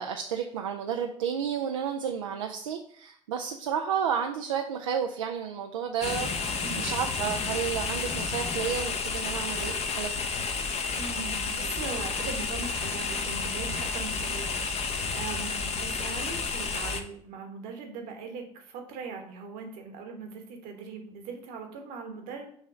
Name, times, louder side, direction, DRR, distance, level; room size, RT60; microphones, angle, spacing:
voice 1, 0.0-10.1, right 7 dB, 85° right, 3 dB, 0.4 m, -31 dB
sound 1, 6.0-17.0, left 4 dB, 40° left, 0.8 m, -31 dB
voice 2, 6.6-7.0 10.9-22.5, right 4 dB, 65° right, 4 dB, 1.2 m, -40 dB
6.4 x 3.0 x 4.9 m, 0.62 s
hypercardioid pair, 55°, 16 cm